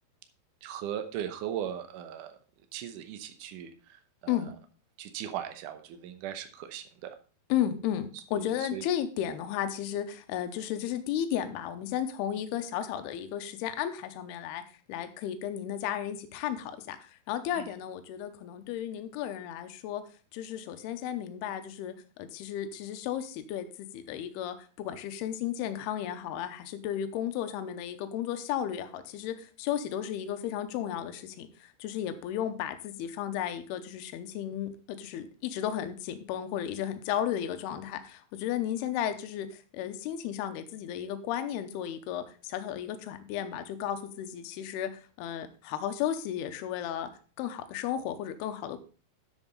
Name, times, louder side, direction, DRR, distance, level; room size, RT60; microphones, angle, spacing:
voice 1, 0.6-2.3 2.7-4.4 5.0-7.2 8.1-8.8 17.5-17.7, right 10 dB, 75° right, 9 dB, 1.9 m, -38 dB
voice 2, 7.5-14.6 14.9-20.0 20.3-47.1 47.4-48.8, left 10 dB, 80° left, 9 dB, 2.8 m, -34 dB
11.0 x 7.3 x 4.0 m, 0.38 s
omnidirectional pair, 4.8 m